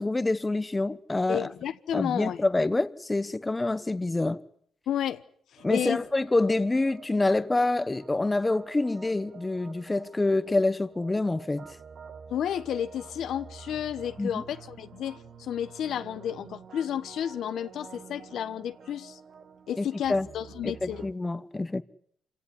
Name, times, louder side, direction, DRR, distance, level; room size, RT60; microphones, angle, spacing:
voice 1, 0.0-1.5 1.9-4.4 5.6-11.7 14.2-14.4 19.8-20.3 20.6-21.8, left 2 dB, 15° left, 1.2 m, -27 dB
voice 2, 1.3-2.4 4.9-5.2 5.5-6.0 12.3-19.2 19.7-21.0, left 10 dB, 70° left, 1.1 m, -32 dB
sound 1, 5.6-21.1, right 6 dB, 55° right, 1.5 m, -48 dB
26.5 x 17.0 x 9.8 m
cardioid pair, 90°, 0 cm